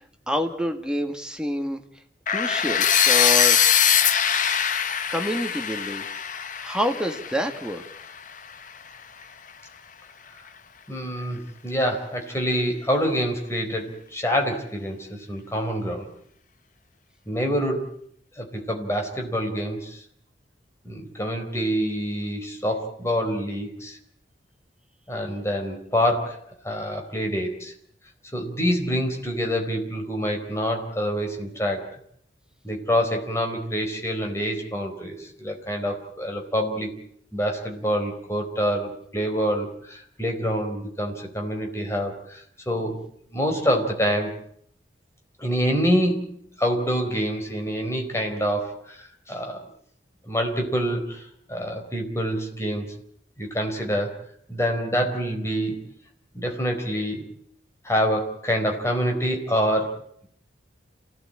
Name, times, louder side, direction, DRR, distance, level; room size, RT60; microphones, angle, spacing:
voice 1, 0.3-1.8 2.3-3.6 5.1-6.0 6.6-7.8, left 1 dB, 5° right, 4 dB, 1.8 m, -27 dB
sound 1, 2.3-8.2, left 8 dB, 45° left, 1.0 m, -22 dB
voice 2, 10.9-16.1 17.3-17.9 18.3-20.0 20.8-24.0 25.1-27.7 28.3-31.9 32.6-36.9 37.3-43.0 43.3-44.4 45.4-49.6 50.2-52.9 53.4-55.9 56.3-57.2 57.8-60.3, equal, 15° left, 2 dB, 4.2 m, -26 dB
28.5 x 17.0 x 8.8 m, 0.68 s
head